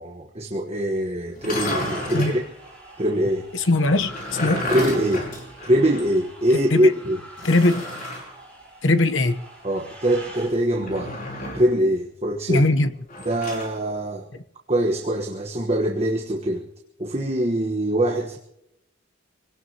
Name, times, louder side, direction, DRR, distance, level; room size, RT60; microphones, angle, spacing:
voice 1, 0.0-2.4 3.0-3.5 4.4-5.3 5.6-7.2 9.6-11.2 11.5-12.6 13.2-14.3 14.7-16.7 17.0-18.4, right 1 dB, 30° right, 1 dB, 1.3 m, -23 dB
sound 1, 1.3-2.4 3.9-6.2 6.5-6.6 7.4-8.3 10.7-11.7 13.1-13.7, left 1 dB, 45° left, 5.5 m, -31 dB
sound 2, 1.6-10.5, right 1 dB, 5° left, 7.0 m, -43 dB
voice 2, 3.7-4.7 6.7-6.9 7.4-7.8 8.8-9.4 12.5-12.9, left 2 dB, 75° left, 10 dB, 1.0 m, -20 dB
25.0 x 18.0 x 2.9 m, 0.81 s
head